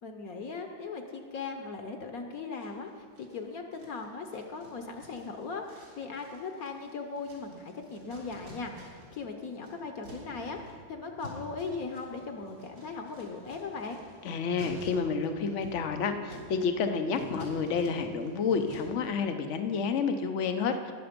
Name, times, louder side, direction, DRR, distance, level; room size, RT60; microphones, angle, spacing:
voice 1, 0.0-14.0, left 4 dB, 60° left, 5 dB, 1.0 m, -39 dB
sound 1, 2.6-3.4 3.7-9.2 9.5-19.1, equal, 75° right, 3.9 m, -49 dB
voice 2, 14.2-20.9, left 5 dB, 75° left, 7 dB, 0.6 m, -30 dB
20.0 x 6.9 x 5.1 m, 2.1 s
omnidirectional pair, 2.2 m